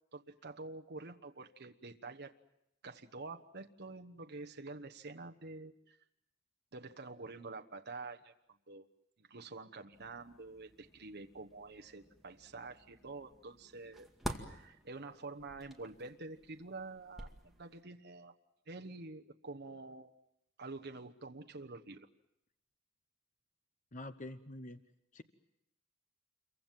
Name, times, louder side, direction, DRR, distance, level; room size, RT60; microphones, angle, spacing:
voice 1, 0.1-2.3 2.8-6.0 6.7-8.3 8.7-8.8 9.2-14.1 14.5-18.3 18.7-20.1 20.6-22.1, right 3 dB, 50° right, 6 dB, 1.2 m, -48 dB
sound 1, 9.9-17.8, right 1 dB, ahead, 2.1 m, -50 dB
voice 2, 23.9-24.8 25.1-25.2, left 1 dB, 35° left, 10 dB, 0.9 m, -46 dB
28.5 x 23.5 x 7.6 m, 0.82 s
head